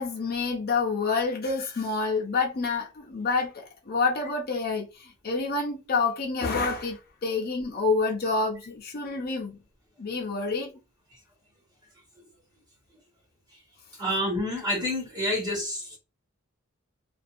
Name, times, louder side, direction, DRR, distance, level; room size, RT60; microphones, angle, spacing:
voice 1, 0.0-9.6 10.0-10.7, left 4 dB, 45° left, 0.5 m, -28 dB
voice 2, 14.0-16.0, left 1 dB, 20° right, 1.0 m, -28 dB
2.6 x 2.2 x 2.4 m
head